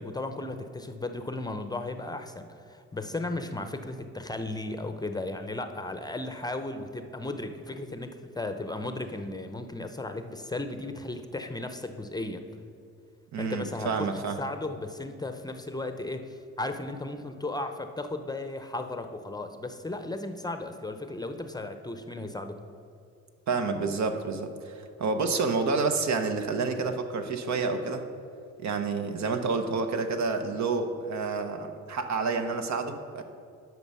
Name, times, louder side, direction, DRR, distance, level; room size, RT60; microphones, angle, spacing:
voice 1, 0.0-12.4 13.4-22.6, left 2 dB, 15° left, 7 dB, 0.6 m, -35 dB
voice 2, 13.3-14.4 23.5-28.0 28.6-33.2, right 4 dB, 65° right, 7 dB, 1.0 m, -29 dB
10.5 x 6.2 x 5.5 m, 2.4 s
cardioid pair, 90°, 30 cm